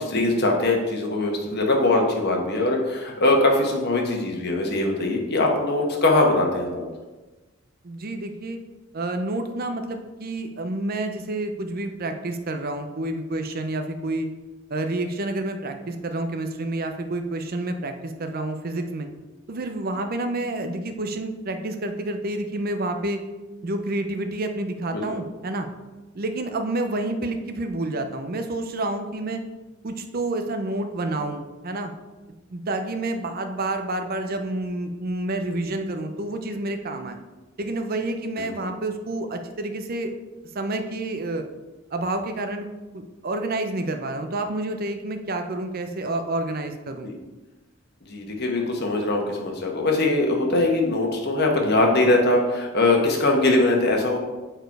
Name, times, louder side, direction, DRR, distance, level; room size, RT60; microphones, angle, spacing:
voice 1, 0.0-6.8 24.9-25.0 38.4-38.5 47.0-47.1 48.1-54.2, left 2 dB, 55° left, 1 dB, 1.3 m, -21 dB
voice 2, 7.8-8.6 8.9-14.3 14.7-19.1 19.5-23.2 23.6-25.7 26.1-29.4 29.8-31.9 32.5-37.2 37.6-40.1 40.5-41.4 41.9-42.7 42.9-47.1, right 2 dB, 45° right, 6 dB, 0.6 m, -29 dB
6.7 x 4.5 x 4.6 m, 1.2 s
head